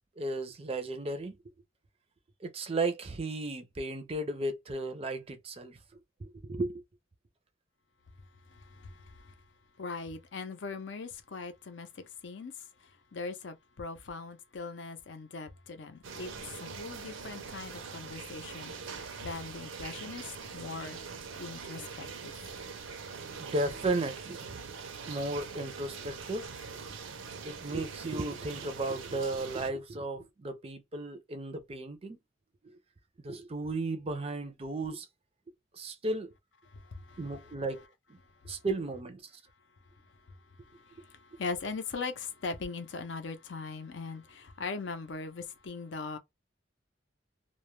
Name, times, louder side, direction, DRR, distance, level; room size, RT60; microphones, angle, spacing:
voice 1, 0.2-1.4 2.4-5.8 6.2-6.8 23.4-24.7 25.1-26.6 27.4-32.2 32.6-32.8 33.2-35.1 35.7-36.3 37.2-37.8 38.4-39.2, right 2 dB, 30° right, 0.4 m, -35 dB
voice 2, 8.2-9.4 9.8-21.0 21.4-22.5 36.7-37.6 38.2-38.6 40.0-46.2, left 4 dB, 65° left, 0.6 m, -41 dB
sound 1, 16.0-29.7, right 5 dB, 85° right, 0.6 m, -43 dB
2.2 x 2.1 x 3.0 m
head